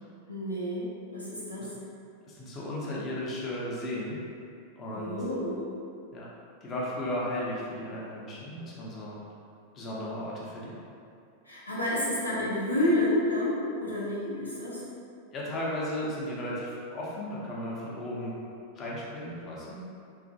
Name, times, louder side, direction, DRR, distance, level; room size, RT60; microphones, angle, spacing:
voice 1, 0.3-1.7 4.9-5.6 11.4-14.8, left 1 dB, 85° left, -8 dB, 0.6 m, -29 dB
voice 2, 2.3-4.2 4.8-5.2 6.1-6.3 6.6-9.1 9.7-10.8 15.3-18.3 18.7-19.8, left 1 dB, 30° left, -6 dB, 0.6 m, -35 dB
2.9 x 2.4 x 2.6 m, 2.5 s
figure-of-eight pair, 90°, 0 cm